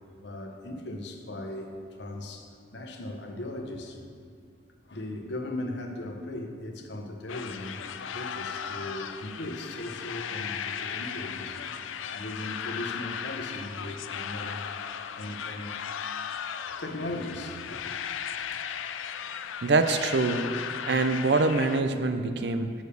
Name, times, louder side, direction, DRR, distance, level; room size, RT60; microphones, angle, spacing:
voice 1, 0.2-4.0 4.9-7.8 8.1-11.6 12.1-14.6 15.2-15.8 16.8-17.9, left 1 dB, 65° left, 3 dB, 0.9 m, -38 dB
sound 1, 7.3-21.8, left 8 dB, 85° left, 0.4 m, -36 dB
voice 2, 19.6-20.5 20.9-22.7, right 3 dB, 60° right, 9 dB, 0.5 m, -24 dB
6.9 x 6.3 x 6.8 m, 2.2 s
head